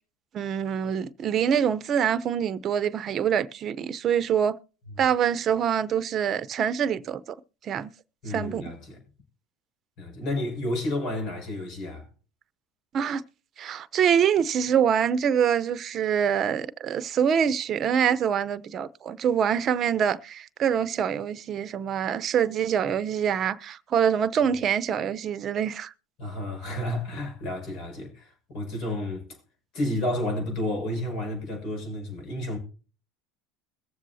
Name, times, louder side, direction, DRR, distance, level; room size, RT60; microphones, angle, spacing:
voice 1, 0.3-4.6 5.0-7.2 7.6-7.9 8.3-8.7 12.9-13.2 13.6-25.9, right 8 dB, 40° right, 0.7 m, -25 dB
voice 2, 8.2-9.0 10.0-12.0 26.2-29.3 29.7-32.6, left 1 dB, 60° left, 5.9 m, -31 dB
22.0 x 7.4 x 2.7 m
supercardioid pair, 100°, 0 cm